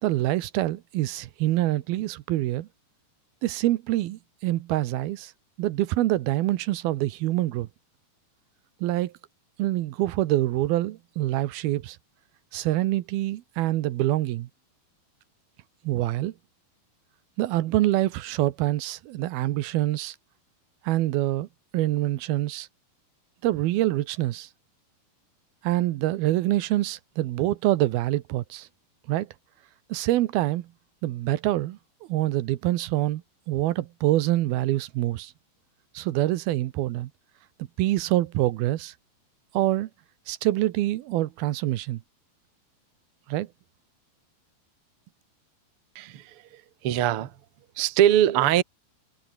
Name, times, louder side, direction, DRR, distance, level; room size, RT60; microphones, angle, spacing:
voice 1, 0.0-2.7 3.4-5.3 5.6-7.7 8.8-9.1 9.6-12.0 12.5-14.5 15.8-16.3 17.4-20.2 20.8-21.5 21.7-22.7 23.4-24.5 25.6-28.7 29.1-29.3 29.9-30.7 31.0-31.8 32.1-35.3 35.9-37.1 37.8-38.9 39.5-39.9 40.3-42.0 43.3-43.5, right 16 dB, 85° right, 2.9 m, -25 dB
voice 2, 45.9-47.3 47.7-48.6, right 11 dB, 55° right, 1.7 m, -22 dB
omnidirectional pair, 4.3 m